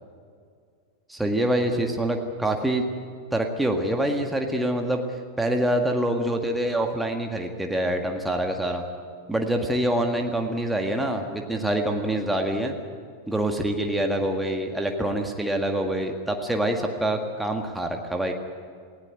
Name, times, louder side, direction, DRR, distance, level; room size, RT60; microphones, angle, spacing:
voice 1, 1.1-2.8 3.3-5.0 5.4-8.8 9.3-12.8 13.3-18.3, right 1 dB, 5° right, 3 dB, 1.8 m, -25 dB
19.0 x 17.0 x 9.1 m, 2.1 s
figure-of-eight pair, 90°, 0 cm